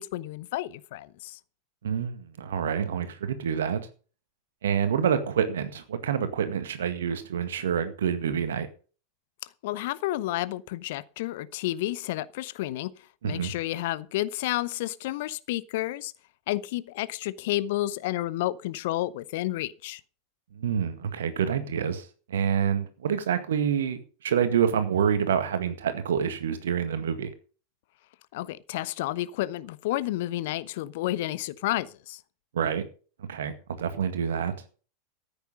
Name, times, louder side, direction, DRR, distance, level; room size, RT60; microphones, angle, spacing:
voice 1, 0.0-1.4 9.6-12.9 13.2-16.1 16.5-20.0 28.3-32.2, left 16 dB, 55° left, 0.8 m, -31 dB
voice 2, 1.8-3.9 4.6-8.7 13.2-13.5 20.5-27.3 32.5-32.8 33.3-34.6, right 8 dB, 65° right, 1.9 m, -27 dB
14.0 x 9.1 x 5.3 m
figure-of-eight pair, 85°, 0 cm